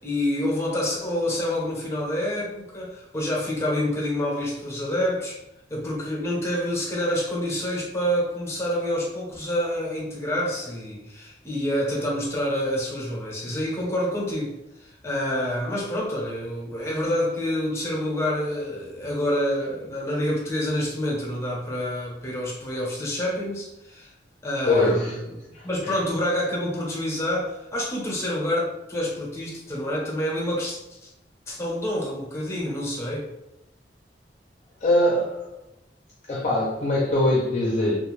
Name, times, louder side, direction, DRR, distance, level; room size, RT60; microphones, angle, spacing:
voice 1, 0.0-5.4 5.7-24.1 24.4-25.3 25.6-31.1 31.5-33.3, left 1 dB, 15° left, -4 dB, 0.8 m, -27 dB
voice 2, 24.7-25.1 25.5-26.0 34.8-35.5 36.3-38.0, left 1 dB, 40° left, -4 dB, 0.5 m, -22 dB
2.4 x 2.2 x 3.1 m, 0.91 s
head